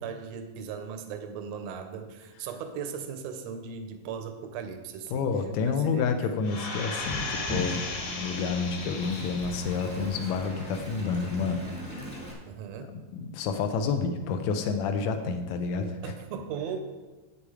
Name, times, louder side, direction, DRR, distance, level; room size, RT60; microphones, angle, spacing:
voice 1, 0.0-5.3 5.6-6.1 12.4-12.9 16.0-16.8, right 7 dB, 75° right, 7 dB, 1.5 m, -38 dB
voice 2, 5.1-7.9 8.2-11.6 11.9-12.2 12.9-16.1, left 5 dB, 75° left, 7 dB, 1.7 m, -29 dB
sound 1, 6.4-9.8 10.3-10.4, left 3 dB, 50° left, 2.5 m, -36 dB
Wind, 7.0-12.3, equal, 5° left, 1.0 m, -39 dB
8.6 x 8.5 x 4.9 m, 1.2 s
omnidirectional pair, 4.1 m